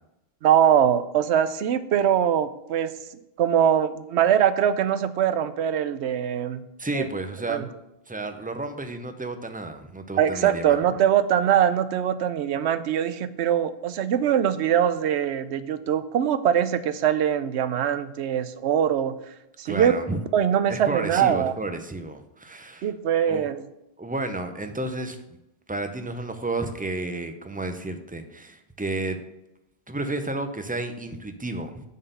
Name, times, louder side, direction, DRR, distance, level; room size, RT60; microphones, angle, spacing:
voice 1, 0.4-6.6 6.9-7.1 7.5-7.7 10.2-19.1 19.6-19.9 20.3-21.5 22.8-23.6, right 9 dB, 90° right, 13 dB, 0.9 m, -22 dB
voice 2, 6.8-7.7 8.1-10.8 19.6-20.2 20.7-22.9 23.3-23.5 24.0-25.2 25.7-29.2 29.9-31.8, right 2 dB, 10° right, 7 dB, 0.5 m, -31 dB
7.4 x 4.3 x 6.8 m, 0.87 s
omnidirectional pair, 1.1 m